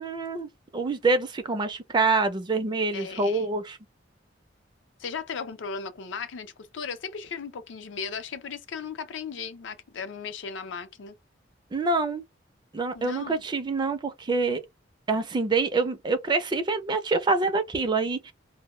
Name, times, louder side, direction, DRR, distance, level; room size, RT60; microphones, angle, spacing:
voice 1, 0.0-3.8 11.7-12.2 12.7-14.6 15.1-18.3, right 3 dB, 25° right, 0.4 m, -26 dB
voice 2, 2.9-3.5 5.0-11.1 12.9-13.4, left 6 dB, 80° left, 0.5 m, -36 dB
2.1 x 2.0 x 3.0 m
head